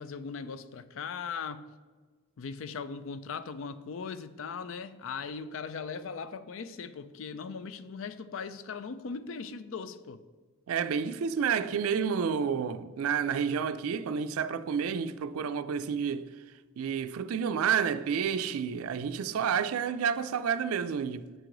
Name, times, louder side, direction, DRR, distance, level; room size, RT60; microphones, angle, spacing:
voice 1, 0.0-1.7 2.4-10.2, left 5 dB, 65° left, 0.4 m, -39 dB
voice 2, 10.7-16.3 16.8-21.3, right 7 dB, 85° right, 0.4 m, -30 dB
7.6 x 4.7 x 3.8 m
head